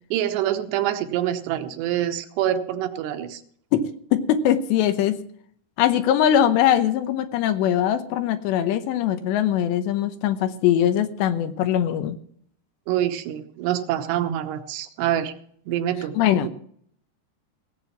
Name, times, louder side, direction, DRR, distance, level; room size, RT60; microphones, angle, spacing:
voice 1, 0.1-3.4 12.9-15.3 15.7-16.2, right 11 dB, 80° right, 8 dB, 3.1 m, -25 dB
voice 2, 4.1-5.2 5.8-12.1 16.2-16.5, left 10 dB, 85° left, 8 dB, 3.1 m, -21 dB
17.5 x 7.8 x 7.1 m, 0.62 s
omnidirectional pair, 5.0 m